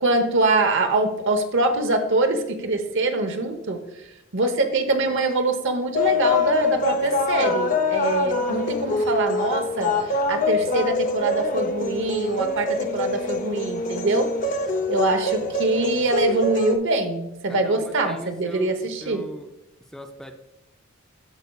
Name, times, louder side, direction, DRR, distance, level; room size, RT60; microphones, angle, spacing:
voice 1, 0.0-3.8 4.3-14.3 14.9-19.3, right 2 dB, 65° right, 7 dB, 0.9 m, -24 dB
sound 1, 5.9-16.8, left 3 dB, 40° left, 0.7 m, -25 dB
voice 2, 17.5-19.5 19.9-20.4, equal, 5° left, 5 dB, 0.4 m, -40 dB
14.5 x 5.2 x 2.3 m, 0.91 s
head